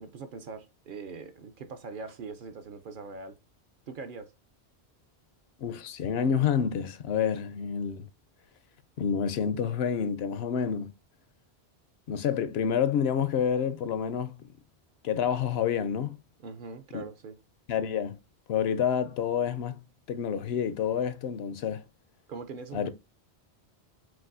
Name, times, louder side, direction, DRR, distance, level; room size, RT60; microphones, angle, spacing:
voice 1, 0.0-3.4 3.9-4.3 16.4-17.4 22.3-22.9, right 4 dB, 60° right, 0.7 m, -42 dB
voice 2, 5.6-8.1 9.0-10.9 12.1-14.4 15.0-16.2 16.9-17.0 17.7-18.2 18.5-19.8 20.1-21.8 22.7-22.9, left 8 dB, 75° left, 0.8 m, -28 dB
6.0 x 2.6 x 2.5 m
omnidirectional pair, 1.1 m